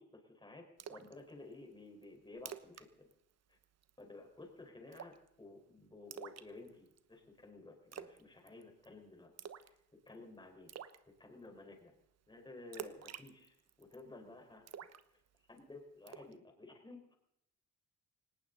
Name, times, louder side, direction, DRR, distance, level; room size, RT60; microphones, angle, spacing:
voice 1, 0.0-3.1 3.5-3.6 4.0-9.3 9.6-10.7 11.2-12.0 12.3-14.6 15.1-15.2 15.5-17.2, left 2 dB, 15° left, 3 dB, 4.5 m, -54 dB
Splash splatter, 0.8-1.1 1.5-1.6 2.0-2.1 2.4-2.9 3.1-3.3 3.6-4.0 4.9-5.3 6.1-7.0 7.9-8.2 8.5-8.9 9.4-9.8 10.1-10.2 10.7-11.0 12.7-14.0 14.7-15.6 16.1-16.3, right 8 dB, 55° right, 1.1 m, -48 dB
19.0 x 18.0 x 4.0 m, 0.79 s
cardioid pair, 90°, 30 cm